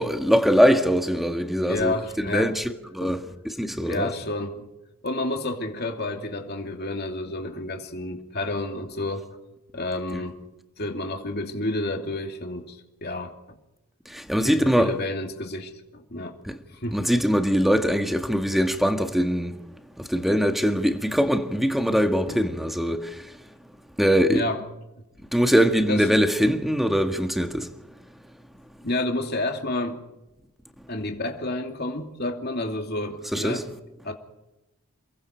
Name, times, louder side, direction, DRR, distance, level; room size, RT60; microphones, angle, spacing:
voice 1, 0.0-4.1 10.1-10.2 14.1-14.9 16.5-16.6 16.9-19.5 20.0-23.0 24.0-24.4 25.3-27.7 33.3-33.6, equal, ahead, 1.6 m, -22 dB
voice 2, 1.7-2.5 3.0-3.2 3.8-4.7 5.0-9.3 9.7-10.4 10.8-13.3 14.4-16.4 16.7-17.0 22.3-22.4 24.3-24.6 25.9-26.0 28.8-30.0 30.9-33.7 34.0-34.1, left 2 dB, 45° left, 2.8 m, -30 dB
29.0 x 23.0 x 4.6 m
head